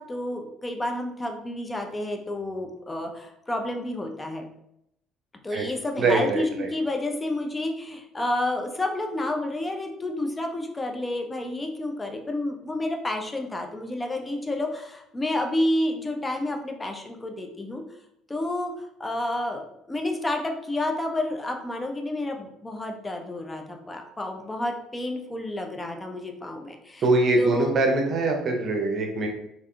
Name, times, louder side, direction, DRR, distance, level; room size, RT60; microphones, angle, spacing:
voice 1, 0.0-4.5 5.4-17.8 18.3-27.0 27.4-27.8, left 1 dB, 20° left, 3 dB, 0.5 m, -30 dB
voice 2, 6.0-6.7 27.0-29.3, right 2 dB, 45° right, 2 dB, 0.6 m, -23 dB
3.4 x 2.4 x 2.2 m, 0.80 s
figure-of-eight pair, 55°, 0 cm